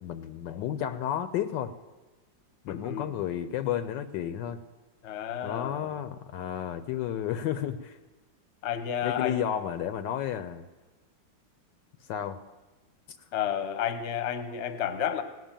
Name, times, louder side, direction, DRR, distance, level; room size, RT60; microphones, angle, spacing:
voice 1, 0.0-1.7 2.6-4.6 5.4-8.0 9.0-10.7 12.1-12.4, left 10 dB, 75° left, 12 dB, 1.2 m, -32 dB
voice 2, 2.7-3.2 5.0-5.9 8.6-9.4 13.3-15.2, left 9 dB, 45° left, 10 dB, 1.0 m, -31 dB
18.0 x 6.2 x 8.8 m, 1.3 s
omnidirectional pair, 2.1 m